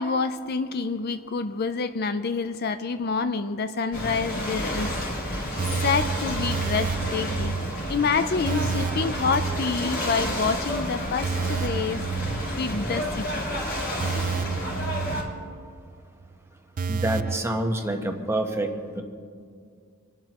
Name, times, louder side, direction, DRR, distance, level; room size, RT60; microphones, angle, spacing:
voice 1, 0.0-4.9 5.2-5.4 5.8-7.5 7.9-13.6, left 5 dB, 50° left, 10 dB, 0.5 m, -28 dB
Ocean / Boat Water vehicle, 3.9-15.2, equal, 65° left, 3.4 m, -30 dB
sound 1, 4.8-10.4 10.7-10.8 11.2-13.2 13.4-13.6 14.0-15.9 16.2-16.3 16.8-17.4, right 6 dB, 40° right, 0.3 m, -31 dB
voice 2, 16.9-18.7 18.9-19.0, right 1 dB, 15° right, 3 dB, 1.2 m, -27 dB
26.5 x 12.0 x 3.0 m, 2.2 s
head